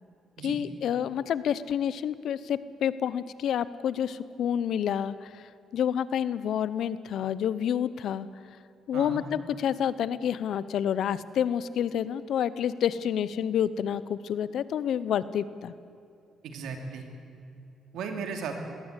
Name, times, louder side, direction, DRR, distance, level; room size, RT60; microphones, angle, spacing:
voice 1, 0.4-8.3 8.9-15.7, left 9 dB, 70° left, 16 dB, 0.8 m, -29 dB
voice 2, 8.9-9.2 16.4-17.0 17.9-18.7, right 5 dB, 80° right, 4 dB, 2.9 m, -36 dB
21.0 x 17.0 x 8.3 m, 2.6 s
cardioid pair, 90°, 0 cm